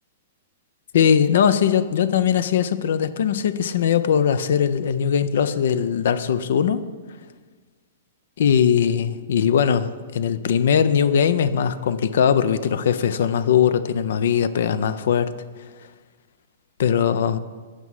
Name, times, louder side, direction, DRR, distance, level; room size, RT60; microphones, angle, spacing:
voice 1, 0.9-6.8 8.4-15.3 16.8-17.4, left 8 dB, 65° left, 0.4 m, -20 dB
8.2 x 4.7 x 5.6 m
hypercardioid pair, 120°, 0 cm